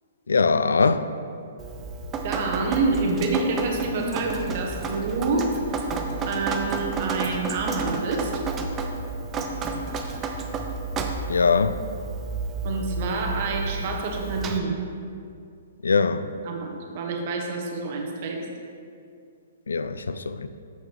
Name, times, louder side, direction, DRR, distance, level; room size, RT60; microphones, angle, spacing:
voice 1, 0.3-1.1 11.3-11.8 15.8-16.3 19.7-20.5, left 4 dB, 90° left, 11 dB, 0.3 m, -22 dB
Drip, 1.6-14.6, right 3 dB, 20° right, 0.5 m, -31 dB
voice 2, 2.2-5.5 6.3-8.3 12.6-14.7 16.5-18.5, right 3 dB, 50° right, 1 dB, 1.0 m, -27 dB
7.1 x 6.3 x 3.1 m, 2.4 s
hypercardioid pair, 135°, 0 cm